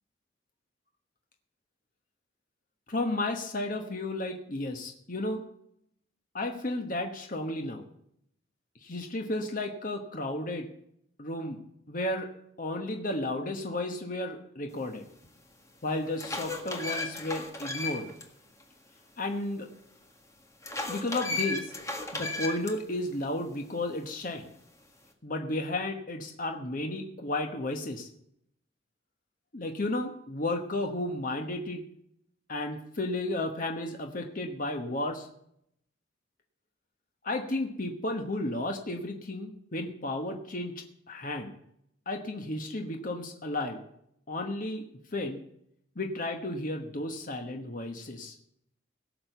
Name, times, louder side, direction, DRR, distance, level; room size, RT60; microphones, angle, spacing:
voice 1, 2.9-5.4 6.3-7.8 8.8-10.7 11.2-11.6 11.9-12.3 12.6-15.1 15.8-18.1 19.2-19.7 20.9-21.7 22.1-24.5 25.2-28.1 29.5-31.8 32.5-35.3 37.2-41.5 42.1-43.8 44.3-44.8 45.1-45.4 46.0-48.4, left 2 dB, 45° left, 4 dB, 1.2 m, -33 dB
sound 1, 15.2-15.3 15.9-18.2 18.6-18.7 20.6-22.7, left 2 dB, 15° left, 1.6 m, -34 dB
17.0 x 6.6 x 7.9 m, 0.74 s
head